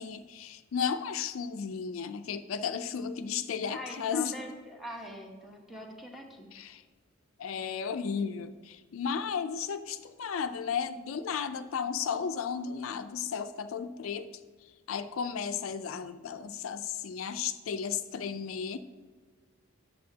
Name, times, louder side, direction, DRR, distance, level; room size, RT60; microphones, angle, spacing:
voice 1, 0.0-4.3 6.5-6.8 7.4-14.3 14.9-18.8, left 6 dB, 85° left, 9 dB, 0.4 m, -34 dB
voice 2, 3.7-6.5, left 1 dB, ahead, 1 dB, 1.0 m, -43 dB
8.6 x 6.6 x 2.8 m, 1.4 s
head